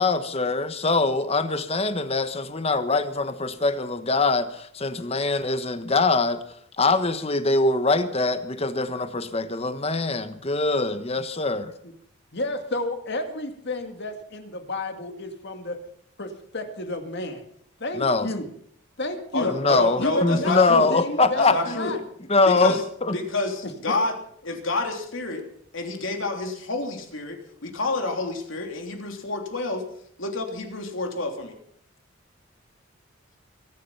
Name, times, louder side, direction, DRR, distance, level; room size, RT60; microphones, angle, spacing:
voice 1, 0.0-6.4 6.8-11.7 18.0-18.3 19.4-21.8 22.3-23.2, left 3 dB, 30° left, 1.2 m, -23 dB
voice 2, 12.3-15.8 16.2-17.4 17.8-18.5 19.0-19.5 20.0-22.0 23.6-23.9, left 1 dB, 55° left, 2.2 m, -31 dB
voice 3, 19.3-20.9 21.3-21.9 22.5-22.8 23.1-24.2 24.4-25.4 25.7-29.8 30.2-31.5, left 2 dB, 75° left, 3.2 m, -28 dB
24.0 x 10.5 x 5.7 m
head